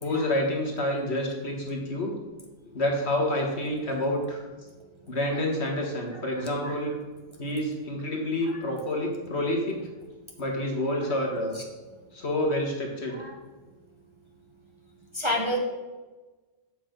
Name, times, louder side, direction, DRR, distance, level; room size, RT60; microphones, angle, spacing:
voice 1, 0.0-2.1 2.7-4.4 5.1-6.9 7.4-9.8 10.4-11.6 12.1-13.2, left 1 dB, 60° left, 0 dB, 1.9 m, -28 dB
voice 2, 6.4-6.7 8.4-8.6 11.5-11.6 13.2-13.4 15.1-15.6, left 1 dB, 25° right, 0 dB, 0.9 m, -30 dB
7.8 x 6.1 x 5.2 m, 1.3 s
omnidirectional pair, 1.2 m